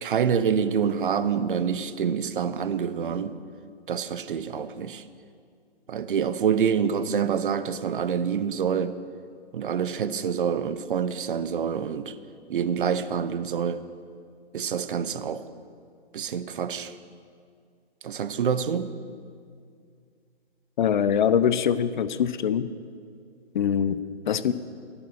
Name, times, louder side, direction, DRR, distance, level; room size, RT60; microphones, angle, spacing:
voice 1, 0.0-3.4 3.9-5.0 5.9-9.0 9.5-12.1 12.5-13.8 14.5-15.4 16.1-16.9 18.0-18.9, right 7 dB, 50° right, 13 dB, 0.7 m, -26 dB
voice 2, 20.8-22.7 23.5-24.5, left 8 dB, 45° left, 15 dB, 0.6 m, -23 dB
12.0 x 11.0 x 6.4 m, 2.2 s
figure-of-eight pair, 135°, 33 cm